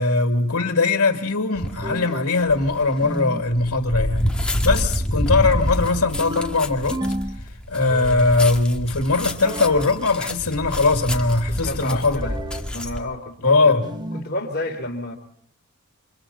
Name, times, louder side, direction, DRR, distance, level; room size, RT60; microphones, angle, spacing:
voice 1, 0.0-7.0 7.7-12.2 13.4-13.8, left 3 dB, 75° left, 2.3 m, -20 dB
sound 1, 1.5-1.9 2.5-13.0, equal, 5° left, 1.9 m, -27 dB
sound 2, 1.8-2.4 3.0-3.5 6.2-7.4 7.8-8.5 9.4-9.9 12.2-12.7 13.8-14.3, equal, 20° right, 1.0 m, -31 dB
voice 2, 11.5-12.4 12.7-13.8 14.1-15.2, left 1 dB, 45° left, 3.4 m, -30 dB
29.0 x 26.5 x 4.2 m
head